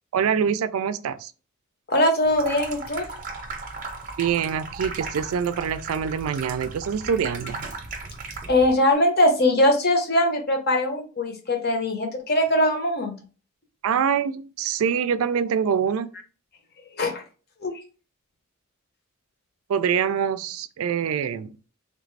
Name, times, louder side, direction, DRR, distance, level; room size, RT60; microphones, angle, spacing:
voice 1, 0.1-1.3 4.2-7.7 13.8-16.1 19.7-21.6, right 7 dB, 75° right, 0.3 m, -25 dB
voice 2, 1.9-3.0 8.5-13.2 17.0-17.2 17.6-17.7, left 1 dB, 45° left, 0.8 m, -21 dB
Water tap faucet / Sink (filling or washing), 2.3-8.7, right 3 dB, 35° right, 0.6 m, -36 dB
3.3 x 2.5 x 3.1 m
head